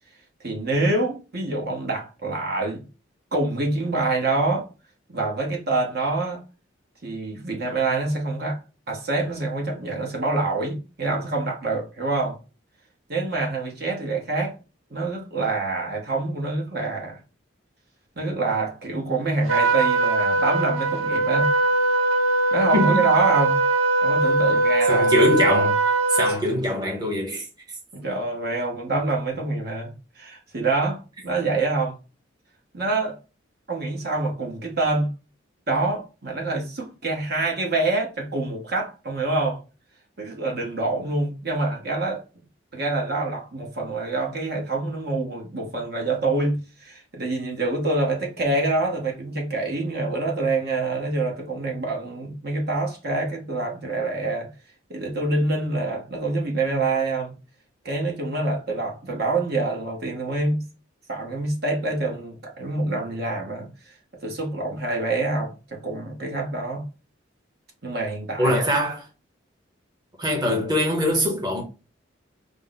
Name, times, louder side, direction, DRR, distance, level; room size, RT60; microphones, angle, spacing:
voice 1, 0.4-2.8 3.3-4.7 5.1-6.4 7.0-8.6 8.9-12.4 13.1-14.6 14.9-17.2 18.2-21.5 22.5-23.6 24.0-25.1 26.3-26.4 27.9-32.0 32.7-33.2 33.7-35.1 35.7-39.6 40.2-42.2 42.7-54.5 54.9-57.3 57.8-60.6 61.1-63.9 64.2-66.9 67.8-68.7, right 2 dB, 50° right, 1.0 m, -26 dB
Trumpet, 19.5-26.4, right 2 dB, 85° right, 0.6 m, -21 dB
voice 2, 22.7-23.0 24.9-25.8 26.1-27.5 68.4-69.0 70.2-71.6, equal, 20° right, 1.0 m, -22 dB
5.1 x 2.0 x 3.9 m
head